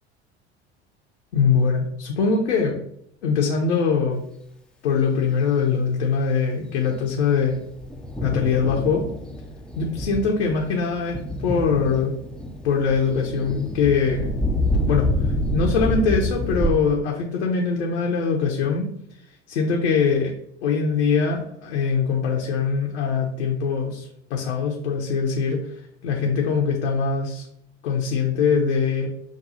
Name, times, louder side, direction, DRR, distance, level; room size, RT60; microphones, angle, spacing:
voice 1, 1.3-2.8 3.2-4.2 4.8-7.6 8.2-9.0 9.8-12.1 12.6-14.3 14.7-18.9 19.5-20.3 20.6-27.4 27.8-29.1, left 5 dB, 70° left, -1 dB, 0.8 m, -22 dB
Thunder, 7.0-16.7, left 1 dB, 5° left, 0.4 m, -27 dB
6.1 x 2.3 x 2.7 m, 0.74 s
figure-of-eight pair, 75°, 34 cm